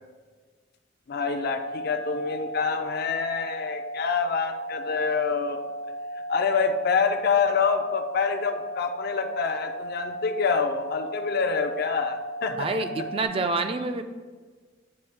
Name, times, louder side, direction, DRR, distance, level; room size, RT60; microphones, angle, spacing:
voice 1, 1.1-5.6 6.3-12.7, left 5 dB, 55° left, 7 dB, 0.4 m, -26 dB
sound 1, 1.4-13.3, right 1 dB, 70° right, 0.8 m, -36 dB
voice 2, 12.6-14.0, right 3 dB, 30° right, 7 dB, 0.3 m, -27 dB
8.8 x 3.4 x 3.3 m, 1.4 s
head